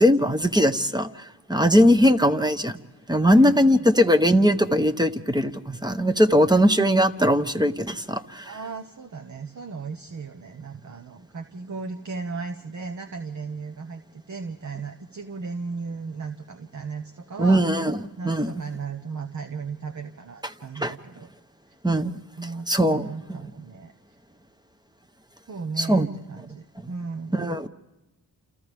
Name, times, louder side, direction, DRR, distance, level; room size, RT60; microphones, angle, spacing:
voice 1, 0.0-2.8 3.1-8.5 17.4-18.0 18.2-18.6 20.8-20.9 21.8-22.2 22.7-23.5 25.8-26.1 26.8-26.9 27.3-27.7, equal, 10° right, 8 dB, 1.0 m, -20 dB
voice 2, 3.3-3.8 8.4-17.6 18.2-21.3 22.4-23.9 25.5-27.6, right 4 dB, 45° right, 7 dB, 1.1 m, -36 dB
29.0 x 28.5 x 3.6 m, 1.0 s
cardioid pair, 70°, 39 cm